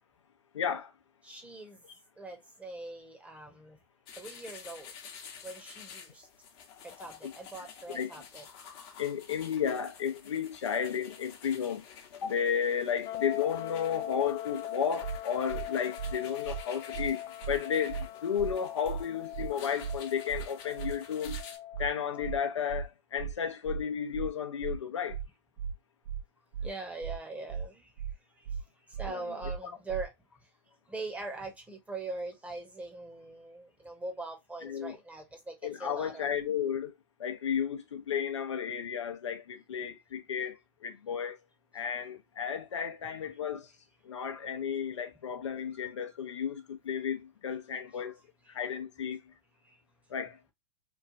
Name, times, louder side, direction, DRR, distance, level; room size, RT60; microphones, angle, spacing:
voice 1, 0.5-0.9 7.2-7.3 7.9-8.1 9.0-11.8 12.1-21.4 21.8-25.2 29.1-29.2 34.6-35.0 35.6-36.9 37.2-41.4 41.7-43.7 44.0-48.2 48.5-49.2 50.1-50.4, left 8 dB, 80° left, 0.6 m, -33 dB
voice 2, 1.2-1.8 2.2-3.8 4.2-4.9 5.4-6.3 6.8-8.5 26.6-27.9 28.4-30.1 30.9-36.3 47.9-48.0 49.6-49.8, right 3 dB, 10° right, 0.9 m, -42 dB
sound 1, 4.1-21.6, left 7 dB, 50° left, 0.9 m, -50 dB
sound 2, 13.1-22.7, left 12 dB, 35° left, 0.4 m, -41 dB
sound 3, 15.0-15.2 15.5-15.6 16.0-16.1 16.4-16.6 16.9-17.1 17.4-17.6 17.9-18.0 18.4-18.5 18.8-19.0 19.3-19.5 19.8-20.0 20.3-20.4 20.8-20.9 21.2-21.4 21.7-21.9 22.2-22.4 22.7-22.8 23.2-23.3 23.6-23.8 24.1-24.3 24.6-24.8 25.1-25.2 25.6-25.7 26.0-26.2 26.5-26.7 27.0-27.2 27.5-27.6 28.0-28.1 28.4-28.6 28.9-29.1 29.4-29.6 29.9-30.0, right 7 dB, 60° right, 0.7 m, -36 dB
3.1 x 2.3 x 2.4 m
hypercardioid pair, 100°, 15 cm